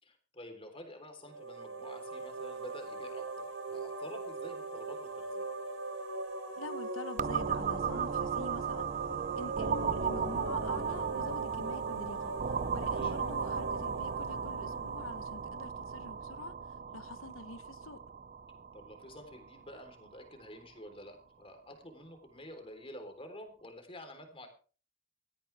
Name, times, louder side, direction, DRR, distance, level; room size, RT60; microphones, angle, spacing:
voice 1, 0.0-5.5 12.9-13.1 18.7-24.5, left 1 dB, 30° left, 3.7 m, -49 dB
sound 1, 1.2-15.9, right 3 dB, 75° right, 3.9 m, -41 dB
voice 2, 6.6-8.9 9.4-12.3 12.7-16.5 16.9-18.0, left 3 dB, 85° left, 0.9 m, -45 dB
sound 2, 7.2-20.7, right 6 dB, 40° right, 0.5 m, -36 dB
17.5 x 14.0 x 3.5 m
head